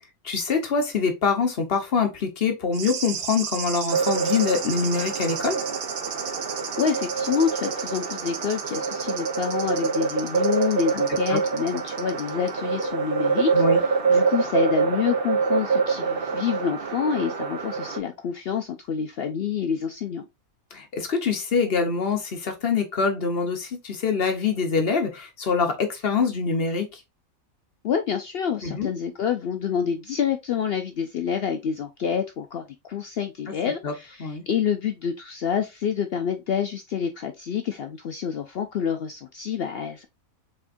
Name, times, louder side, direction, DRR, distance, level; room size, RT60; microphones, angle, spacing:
voice 1, 0.2-5.6 11.3-11.4 13.5-13.8 20.7-27.0 28.6-28.9 33.8-33.9 34.2-34.4, left 5 dB, 45° left, 1.0 m, -24 dB
sound 1, 2.7-12.5 12.8-12.9, right 7 dB, 70° right, 1.0 m, -35 dB
sound 2, 3.9-18.0, right 5 dB, 45° right, 0.9 m, -26 dB
voice 2, 6.8-20.3 27.8-40.1, left 7 dB, 75° left, 0.5 m, -27 dB
4.3 x 3.5 x 2.5 m
omnidirectional pair, 1.5 m